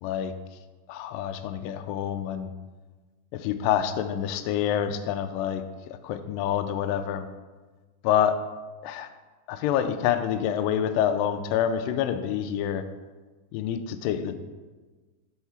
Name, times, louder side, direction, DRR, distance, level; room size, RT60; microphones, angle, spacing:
voice 1, 0.0-0.3 0.9-2.5 3.3-5.6 6.0-7.3 8.0-8.4 8.8-9.1 9.5-12.8 13.5-14.4, left 9 dB, 80° left, 9 dB, 2.0 m, -27 dB
6.3 x 4.7 x 5.7 m, 1.3 s
omnidirectional pair, 4.3 m